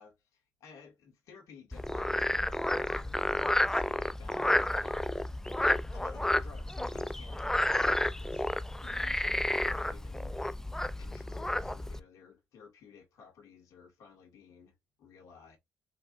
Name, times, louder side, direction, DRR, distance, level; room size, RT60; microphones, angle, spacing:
voice 1, 0.0-8.5 8.8-10.6 11.0-15.6, left 6 dB, 65° left, 2.3 m, -55 dB
Frog, 1.7-12.0, left 1 dB, 10° left, 0.5 m, -31 dB
4.4 x 3.9 x 2.6 m
supercardioid pair, 55°, 6 cm